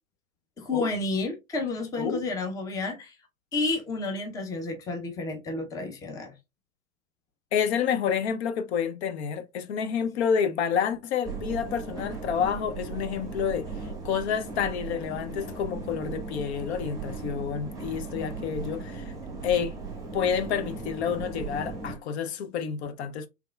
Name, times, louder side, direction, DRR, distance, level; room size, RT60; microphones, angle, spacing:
voice 1, 0.6-3.1 3.5-6.3, left 3 dB, 10° left, 0.5 m, -31 dB
voice 2, 7.5-13.7 14.0-19.1 19.4-19.7 20.1-23.3, left 7 dB, 55° left, 0.6 m, -29 dB
sound 1, 11.2-22.0, right 4 dB, 10° right, 1.0 m, -37 dB
3.3 x 3.3 x 2.2 m
hypercardioid pair, 105°, 41 cm